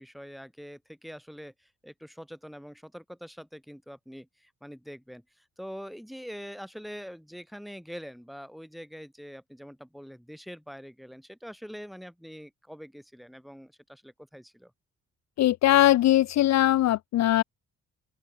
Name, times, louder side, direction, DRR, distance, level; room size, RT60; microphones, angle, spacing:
voice 1, 0.0-14.7, equal, ahead, 4.3 m, -44 dB
voice 2, 15.4-17.4, left 13 dB, 60° left, 0.6 m, -21 dB
open air
cardioid pair, 90°, 30 cm